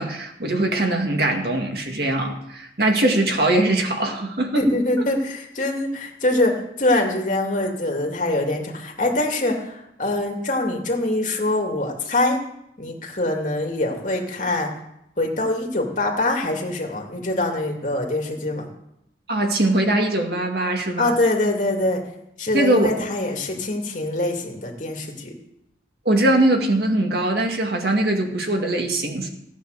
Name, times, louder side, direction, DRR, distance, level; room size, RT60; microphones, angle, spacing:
voice 1, 0.0-4.6 19.3-21.1 22.5-23.0 26.1-29.3, right 1 dB, 60° right, 3 dB, 2.1 m, -21 dB
voice 2, 4.5-12.4 12.8-14.7 15.2-18.6 21.0-22.0 22.4-25.3, left 2 dB, 45° left, 1 dB, 2.6 m, -24 dB
16.0 x 9.3 x 6.7 m, 0.81 s
head